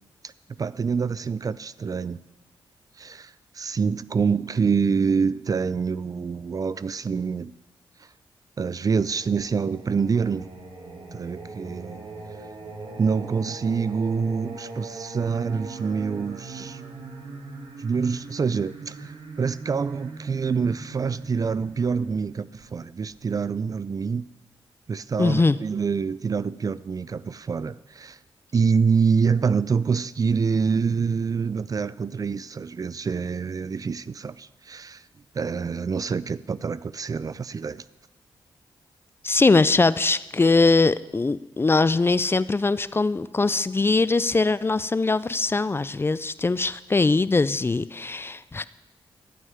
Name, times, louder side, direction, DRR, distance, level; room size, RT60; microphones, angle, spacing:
voice 1, 0.6-2.2 3.0-7.5 8.6-10.5 11.1-12.1 13.0-16.8 17.8-24.2 24.9-28.2 28.5-35.0 35.3-37.8, right 5 dB, 40° right, 0.4 m, -26 dB
Singing, 8.9-23.6, right 3 dB, 70° right, 2.1 m, -40 dB
voice 2, 25.2-25.6 39.2-48.6, left 3 dB, 25° left, 0.4 m, -21 dB
13.0 x 5.7 x 9.4 m
cardioid pair, 70°, 9 cm